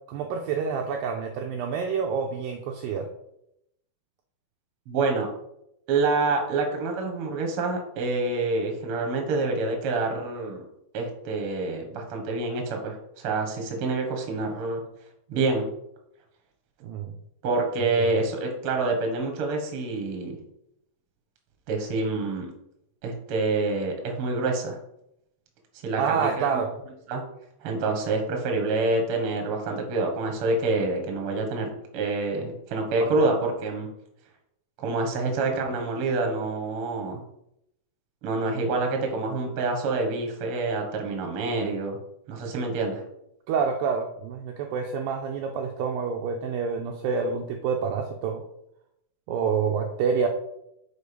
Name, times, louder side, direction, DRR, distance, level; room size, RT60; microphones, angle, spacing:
voice 1, 0.1-3.1 16.8-17.1 18.0-18.1 26.0-26.7 33.0-33.1 35.3-35.6 43.5-48.4 49.3-50.3, right 6 dB, 80° right, 3 dB, 2.1 m, -28 dB
voice 2, 4.9-5.3 5.9-10.6 10.9-14.8 15.3-15.7 17.4-20.4 21.7-22.5 23.0-24.8 25.8-26.5 27.1-27.2 27.6-33.9 34.8-37.2 38.2-42.0 42.3-43.0, right 3 dB, 55° right, 2 dB, 1.6 m, -27 dB
6.7 x 4.6 x 5.2 m, 0.79 s
omnidirectional pair, 4.7 m